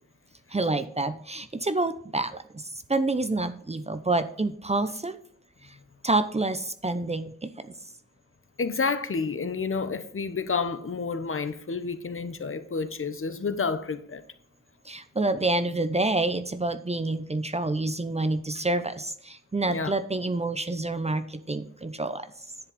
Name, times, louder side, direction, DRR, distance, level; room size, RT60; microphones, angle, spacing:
voice 1, 0.5-5.2 6.0-7.7 14.8-22.3, right 2 dB, 20° right, 0.8 m, -28 dB
voice 2, 8.6-14.2 19.7-19.9, left 4 dB, 45° left, 1.0 m, -30 dB
10.5 x 7.3 x 4.1 m
cardioid pair, 60°, 30 cm